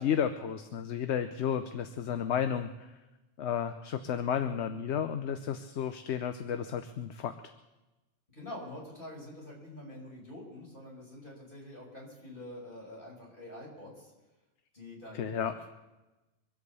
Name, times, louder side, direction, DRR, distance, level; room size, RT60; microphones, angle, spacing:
voice 1, 0.0-2.9 3.4-7.3 15.1-15.5, left 8 dB, 70° left, 9 dB, 1.0 m, -32 dB
voice 2, 8.3-14.1 14.7-15.7, left 1 dB, 45° left, -3 dB, 5.7 m, -46 dB
24.5 x 8.2 x 6.9 m, 1.1 s
omnidirectional pair, 1.2 m